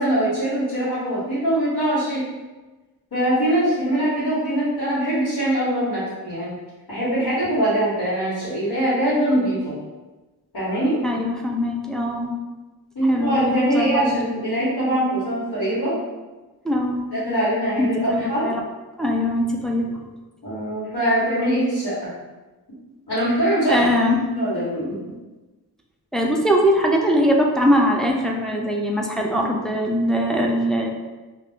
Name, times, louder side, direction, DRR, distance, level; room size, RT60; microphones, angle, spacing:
voice 1, 0.0-2.2 3.1-6.5 6.9-9.7 10.5-11.0 12.9-16.0 17.1-18.5 20.4-22.1 23.1-23.8 24.3-25.0, right 1 dB, 90° left, -11 dB, 1.3 m, -22 dB
voice 2, 11.0-12.4 13.1-14.1 16.6-17.1 17.8-18.6 19.0-20.0 23.7-24.2 26.1-30.9, equal, ahead, 0 dB, 0.4 m, -21 dB
2.5 x 2.4 x 3.5 m, 1.2 s
wide cardioid pair, 55°, 38 cm